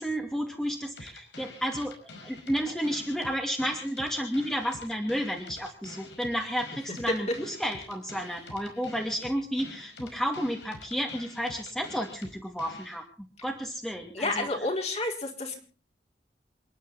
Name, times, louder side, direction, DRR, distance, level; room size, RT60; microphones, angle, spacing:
voice 1, 0.0-14.5, equal, 5° left, 1 dB, 2.6 m, -32 dB
sound 1, 1.0-13.0, left 2 dB, 85° left, 5.3 m, -47 dB
voice 2, 14.1-15.6, left 2 dB, 40° left, 1 dB, 4.4 m, -30 dB
28.0 x 11.0 x 4.1 m, 0.38 s
head